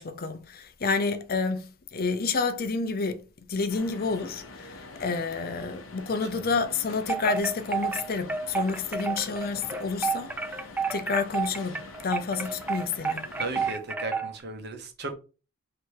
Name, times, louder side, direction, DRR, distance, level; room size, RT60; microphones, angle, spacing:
voice 1, 0.0-3.2 3.5-10.3 10.9-11.8 12.0-13.2, left 4 dB, 50° left, 0.5 m, -29 dB
sound 1, 3.7-13.7, left 3 dB, 80° left, 0.8 m, -45 dB
Wind chime, 7.0-14.4, right 5 dB, 10° right, 0.3 m, -31 dB
voice 2, 13.4-15.1, right 3 dB, 55° right, 1.0 m, -35 dB
3.3 x 2.9 x 4.6 m
head